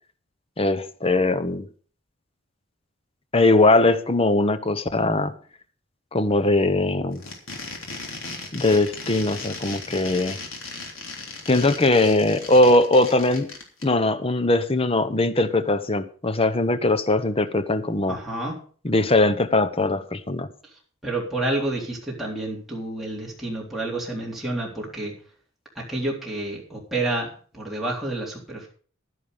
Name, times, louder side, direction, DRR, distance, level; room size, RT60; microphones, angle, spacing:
voice 1, 0.6-1.7 3.3-5.3 6.1-7.2 8.5-10.4 11.5-13.5 13.8-18.2 18.8-20.5, left 2 dB, 30° left, 12 dB, 0.9 m, -20 dB
sound 1, 7.1-13.8, left 3 dB, 75° left, 3.5 m, -36 dB
voice 2, 18.1-18.6 20.6-25.1 25.8-27.3 27.5-28.7, right 2 dB, ahead, -4 dB, 3.6 m, -29 dB
11.5 x 11.0 x 5.0 m, 0.43 s
head